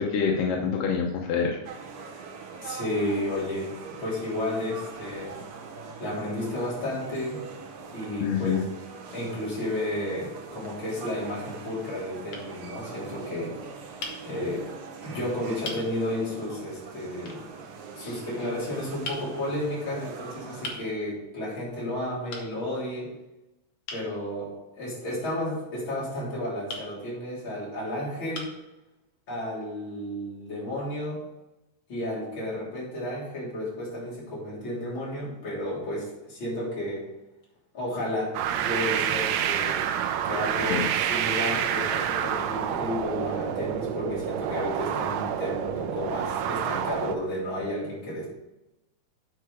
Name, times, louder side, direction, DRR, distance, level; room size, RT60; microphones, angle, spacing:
voice 1, 0.0-1.6 8.2-8.6 18.0-18.2 40.6-40.8, left 6 dB, 85° left, 1 dB, 2.6 m, -26 dB
sound 1, 1.6-20.8, right 5 dB, 65° right, 1.8 m, -42 dB
voice 2, 2.6-5.4 6.0-7.4 7.9-8.6 9.1-13.6 14.2-14.6 15.0-17.4 17.9-23.1 23.9-24.5 24.8-28.5 29.3-31.2 31.9-37.0 37.7-39.8 40.2-48.3, left 1 dB, 35° left, -6 dB, 3.9 m, -32 dB
sound 2, 12.3-12.5 14.0-14.2 15.0-15.1 15.6-15.9 17.3-17.4 19.0-19.3 20.6-20.9 22.3-22.5 23.9-24.1 26.7-26.9 27.7-27.8 28.3-28.6, left 3 dB, 55° left, 2.0 m, -37 dB
sound 3, 38.3-47.2, right 9 dB, 80° right, 2.1 m, -28 dB
9.3 x 5.1 x 4.7 m, 0.98 s
omnidirectional pair, 3.8 m